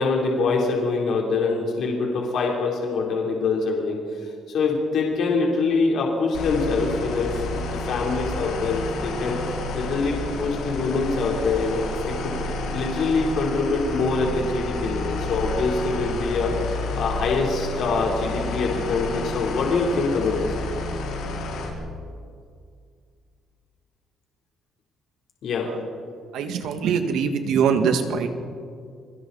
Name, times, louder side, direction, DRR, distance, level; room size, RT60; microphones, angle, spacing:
voice 1, 0.0-4.0 4.5-9.4 9.7-11.9 12.2-20.5 25.4-25.7, left 3 dB, 55° left, -2 dB, 3.7 m, -24 dB
sound 1, 6.3-21.7, left 2 dB, 85° left, 5.1 m, -30 dB
voice 2, 26.3-28.3, right 6 dB, 70° right, 6 dB, 2.0 m, -23 dB
29.0 x 23.0 x 4.2 m, 2.2 s
cardioid pair, 180°, 0 cm